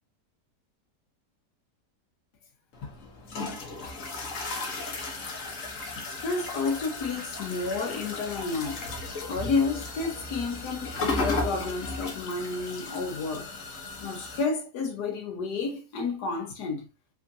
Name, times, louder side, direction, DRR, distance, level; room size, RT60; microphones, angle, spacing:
sound 1, 2.7-14.4, left 3 dB, 55° left, 1.4 m, -35 dB
voice 1, 5.9-13.5 14.0-16.9, left 4 dB, 80° left, 1.5 m, -31 dB
5.2 x 3.5 x 2.6 m
omnidirectional pair, 1.7 m